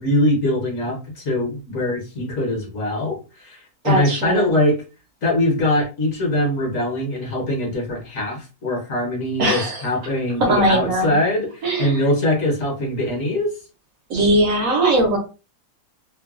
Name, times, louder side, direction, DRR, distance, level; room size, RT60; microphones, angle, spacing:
voice 1, 0.0-4.7 5.2-13.5, left 1 dB, 60° left, -1 dB, 1.3 m, -22 dB
voice 2, 3.8-4.5 9.4-9.8 10.4-11.1 11.6-12.0 14.1-15.2, right 1 dB, 65° right, 1 dB, 1.1 m, -19 dB
3.0 x 2.2 x 2.4 m, 0.32 s
omnidirectional pair, 1.7 m